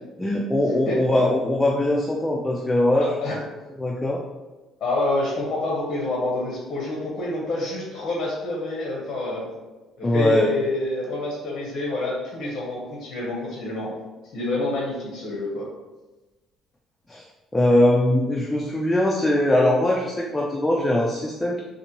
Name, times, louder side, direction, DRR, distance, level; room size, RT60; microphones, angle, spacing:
voice 1, 0.2-3.1 3.8-4.2 10.0-10.5 17.1-17.2 17.5-21.6, left 1 dB, 10° left, -1 dB, 0.3 m, -21 dB
voice 2, 0.8-1.2 3.0-3.4 4.8-9.5 10.0-13.9 14.3-15.7, left 2 dB, 40° left, -3 dB, 0.8 m, -27 dB
4.0 x 2.5 x 2.9 m, 1.2 s
cardioid pair, 165°, 0 cm